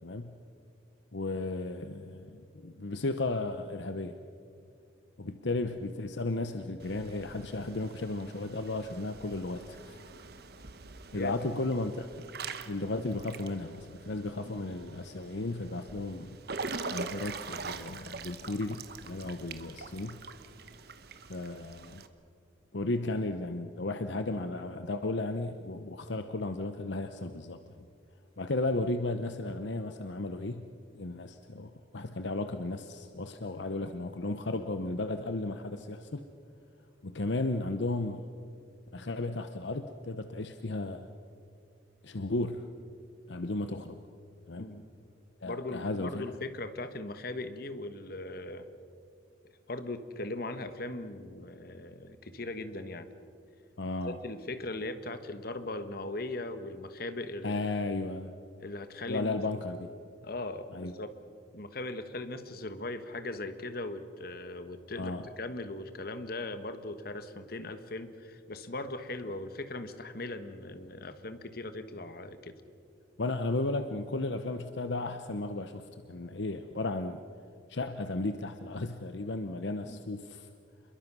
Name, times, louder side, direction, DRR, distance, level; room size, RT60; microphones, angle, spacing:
voice 1, 0.0-0.4 1.1-4.2 5.2-10.0 11.1-12.1 12.7-16.4 16.9-20.2 21.3-22.0 22.7-27.6 28.4-30.7 30.9-36.2 37.0-38.3 38.9-41.1 42.0-42.6 43.3-44.0 44.5-44.7 45.4-46.2 53.8-54.2 57.4-58.3 59.1-59.9 60.7-60.9 64.9-65.2 73.2-77.2 77.7-80.5, left 2 dB, 70° left, 8 dB, 0.9 m, -34 dB
Water / Splash splatter / Drip, 6.8-22.1, right 4 dB, 55° right, 1.2 m, -44 dB
voice 2, 45.4-48.7 49.7-53.1 54.0-57.6 58.6-59.4 60.2-61.1 61.5-72.6 79.8-80.0, left 2 dB, 55° left, 10 dB, 1.3 m, -39 dB
27.5 x 22.0 x 6.2 m, 2.4 s
head